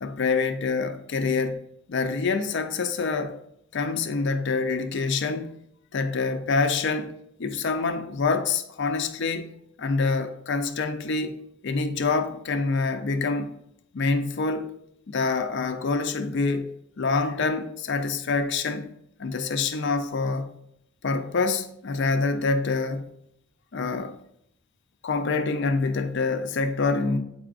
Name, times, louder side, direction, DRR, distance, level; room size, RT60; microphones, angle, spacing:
voice 1, 0.0-1.6 1.9-3.4 3.7-5.5 5.9-7.1 7.4-9.5 9.8-13.5 13.9-14.7 15.1-16.7 17.0-18.9 19.2-20.5 21.0-23.1 23.7-24.1 25.0-27.2, left 4 dB, 65° left, 0.5 m, -26 dB
7.9 x 4.8 x 2.5 m
head